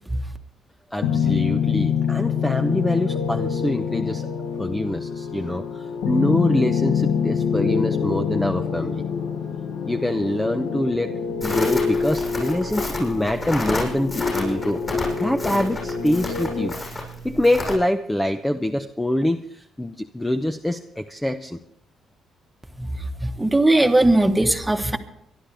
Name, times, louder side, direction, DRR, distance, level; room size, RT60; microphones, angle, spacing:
voice 1, 0.9-9.0 9.9-14.8 15.2-16.8 17.2-21.6, left 1 dB, 10° left, 7 dB, 0.7 m, -25 dB
sound 1, 1.0-16.7, left 6 dB, 90° left, 1.2 m, -26 dB
Crackle, 11.4-17.7, left 1 dB, 35° left, 7.1 m, -31 dB
voice 2, 22.8-25.0, right 2 dB, 10° right, 6 dB, 1.4 m, -19 dB
25.0 x 11.5 x 3.5 m, 0.75 s
cardioid pair, 90°, 0 cm